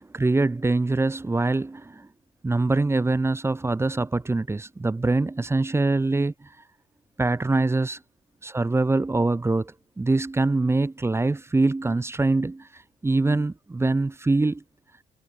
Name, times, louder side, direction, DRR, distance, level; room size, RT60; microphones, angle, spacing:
voice 1, 0.0-2.1 2.4-6.5 7.2-8.0 8.4-14.6, right 2 dB, 15° right, 0.5 m, -24 dB
cardioid pair, 90°, 20 cm